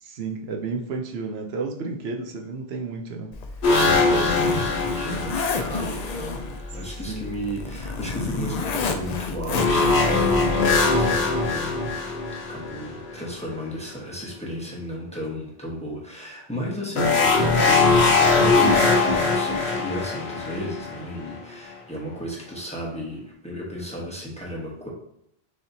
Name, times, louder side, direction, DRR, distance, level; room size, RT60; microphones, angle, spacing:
voice 1, 0.0-3.3 4.0-4.2 7.1-7.2, right 4 dB, 80° right, 2 dB, 0.9 m, -31 dB
Zipper (clothing), 3.3-10.7, left 4 dB, 55° left, 0.5 m, -31 dB
sound 1, 3.6-6.1 9.5-13.3 17.0-21.3, left 3 dB, 90° left, 1.2 m, -21 dB
voice 2, 3.8-11.9 12.5-24.9, equal, 5° left, -4 dB, 1.0 m, -34 dB
6.6 x 2.9 x 2.7 m, 0.74 s
omnidirectional pair, 1.0 m